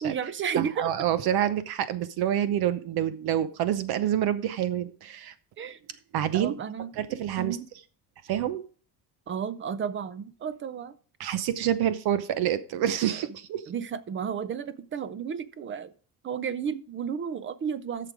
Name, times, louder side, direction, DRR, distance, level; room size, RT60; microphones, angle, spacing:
voice 1, 0.0-0.9 5.6-5.8 6.3-7.7 9.3-11.0 13.7-15.9 16.2-18.1, right 7 dB, 30° right, 0.6 m, -32 dB
voice 2, 0.6-5.3 6.1-6.6 7.0-7.6 8.2-8.6 11.2-13.6, right 10 dB, 60° right, 0.8 m, -27 dB
11.0 x 6.8 x 4.8 m
cardioid pair, 155°, 42 cm